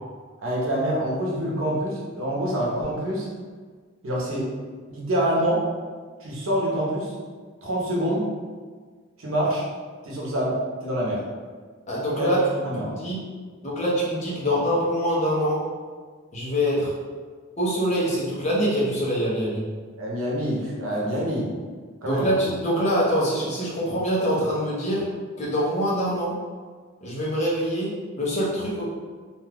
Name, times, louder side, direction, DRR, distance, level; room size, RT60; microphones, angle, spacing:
voice 1, 0.4-3.3 4.0-4.5 4.9-5.6 6.2-7.1 7.6-8.3 9.2-9.6 10.0-11.2 12.2-13.0 20.0-21.5 22.0-22.3, right 1 dB, 80° right, -4 dB, 0.8 m, -26 dB
voice 2, 11.9-12.4 12.8-13.2 13.6-15.6 16.3-16.9 17.6-19.7 22.0-25.1 25.4-26.4 27.0-28.9, equal, 35° left, -6 dB, 0.8 m, -24 dB
2.6 x 2.3 x 3.4 m, 1.5 s
head